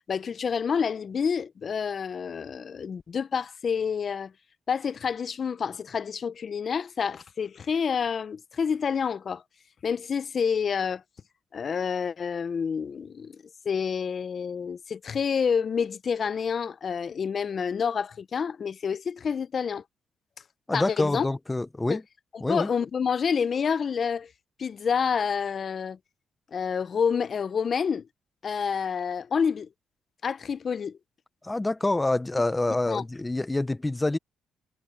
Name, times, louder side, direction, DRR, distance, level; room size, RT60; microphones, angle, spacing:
voice 1, 0.1-4.3 4.7-9.4 9.8-11.0 11.5-19.8 20.7-21.3 21.9-22.0 22.5-24.3 24.6-26.0 26.5-28.1 28.4-29.7 30.2-31.0 32.9-33.0, left 6 dB, 45° left, 0.7 m, -28 dB
voice 2, 20.7-22.0 22.4-22.7 31.4-34.2, left 2 dB, 15° left, 0.8 m, -26 dB
cardioid pair, 90°, 0 cm